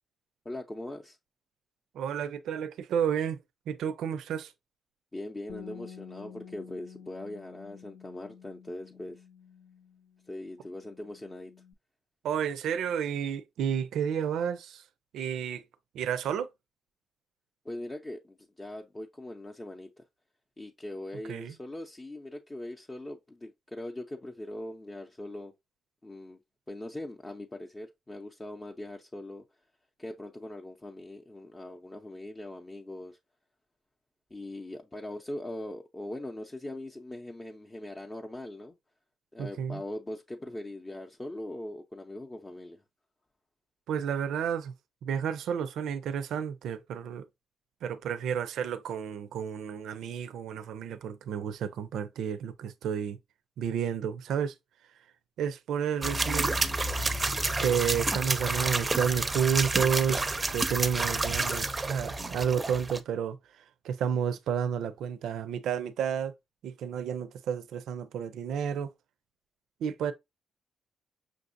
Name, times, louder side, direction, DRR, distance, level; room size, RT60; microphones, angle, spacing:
voice 1, 0.4-1.2 5.1-9.2 10.3-11.5 17.6-19.9 20.6-25.5 26.0-26.4 26.7-29.4 30.0-33.2 34.3-38.8 39.3-42.8, left 1 dB, 20° left, 0.6 m, -41 dB
voice 2, 1.9-3.4 3.7-4.5 12.2-14.8 15.1-15.6 15.9-16.5 21.3-21.6 39.4-39.8 43.9-44.7 45.0-47.3 47.8-53.2 53.6-54.5 55.4-56.5 57.6-60.2 60.5-66.3 66.6-68.9 69.8-70.1, right 8 dB, 85° right, 0.4 m, -31 dB
Bass guitar, 5.5-11.7, left 7 dB, 70° left, 0.6 m, -50 dB
sound 1, 56.0-63.0, right 2 dB, 25° right, 0.5 m, -29 dB
6.1 x 2.6 x 2.5 m
cardioid pair, 90°, 0 cm